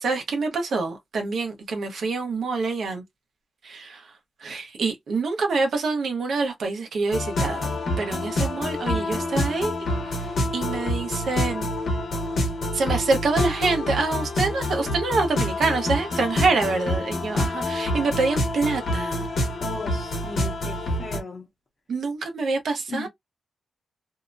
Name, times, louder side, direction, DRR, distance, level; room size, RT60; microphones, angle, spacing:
voice 1, 0.0-3.0 3.6-4.0 4.4-9.7 10.5-11.7 12.7-19.3 21.9-23.1, right 3 dB, 70° right, 0.9 m, -26 dB
sound 1, 7.1-21.2, left 1 dB, 65° left, 1.0 m, -27 dB
voice 2, 19.6-21.5 22.9-23.1, left 3 dB, 40° left, 0.8 m, -36 dB
2.8 x 2.1 x 2.5 m
wide cardioid pair, 135°, 0 cm